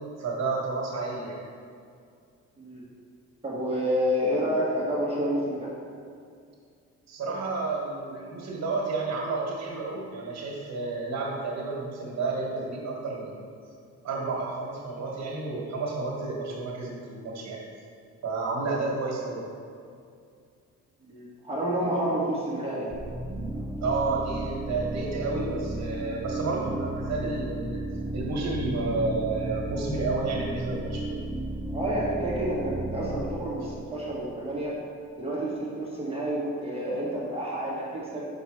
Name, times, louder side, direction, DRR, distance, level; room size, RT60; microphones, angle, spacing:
voice 1, 0.2-1.4 7.1-13.4 14.0-17.6 18.2-19.5 23.8-27.8 28.1-31.2, right 3 dB, 60° right, -2 dB, 1.9 m, -31 dB
voice 2, 2.6-2.9 3.4-5.7 21.1-23.0 31.7-34.7 35.2-38.3, equal, 20° right, -7 dB, 1.7 m, -29 dB
sound 1, 22.9-34.7, right 1 dB, 5° right, 0.4 m, -34 dB
6.0 x 5.2 x 5.0 m, 2.3 s
cardioid pair, 90°, 30 cm